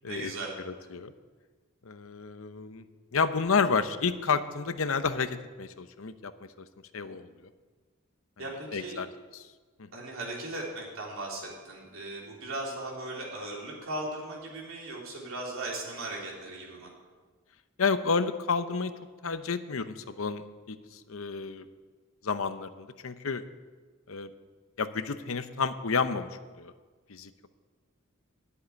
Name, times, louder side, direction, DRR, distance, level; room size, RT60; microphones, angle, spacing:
voice 1, 0.1-0.5 8.4-9.0 9.9-16.9, right 2 dB, 75° right, -2 dB, 3.6 m, -38 dB
voice 2, 0.6-1.1 1.8-2.9 3.1-6.3 6.6-6.7 6.9-7.3 8.7-9.1 9.3-9.5 9.8-9.9 17.8-18.9 19.2-21.7 22.2-23.4 24.1-24.3 24.8-26.3 26.6-26.7 27.1-27.5, left 5 dB, 75° left, 11 dB, 0.8 m, -30 dB
10.5 x 8.4 x 9.7 m, 1.4 s
head